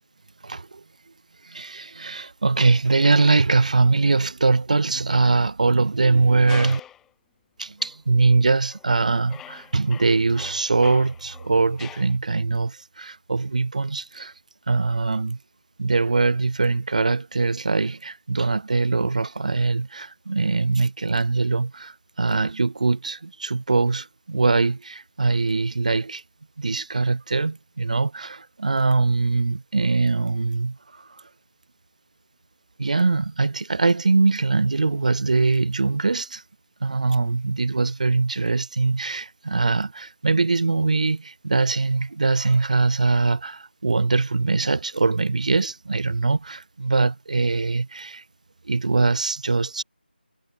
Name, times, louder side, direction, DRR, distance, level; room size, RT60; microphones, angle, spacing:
voice 1, 0.4-0.8 1.4-6.8 7.6-14.3 14.7-15.4 15.8-26.2 26.6-31.1 32.8-36.4 36.8-48.2 48.7-49.8, right 3 dB, 45° right, 2.0 m, -22 dB
sound 1, 6.5-7.1 7.8-8.0 8.6-9.0 9.3-12.2, left 11 dB, 5° left, 6.6 m, -43 dB
figure-of-eight pair, 160°, 6 cm